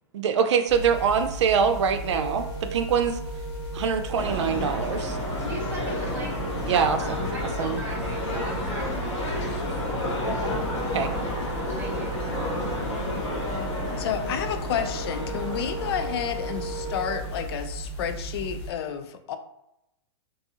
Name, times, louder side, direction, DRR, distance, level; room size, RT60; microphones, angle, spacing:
voice 1, 0.1-3.2 3.7-5.2 6.6-7.0 7.6-7.8 10.9-11.1, right 6 dB, 75° right, 8 dB, 0.4 m, -24 dB
sound 1, 0.7-18.7, right 2 dB, 30° left, 0.8 m, -36 dB
Brass instrument, 2.1-8.6 10.7-17.3, equal, 55° right, 0.8 m, -39 dB
sound 2, 4.1-17.4, left 1 dB, 90° left, 1.1 m, -31 dB
voice 2, 5.4-6.5 6.7-9.5 11.8-12.2, right 1 dB, 15° right, -2 dB, 0.7 m, -38 dB
voice 3, 14.0-19.4, left 8 dB, 60° left, 8 dB, 0.4 m, -30 dB
2.6 x 2.3 x 2.7 m, 0.85 s
hypercardioid pair, 140°, 15 cm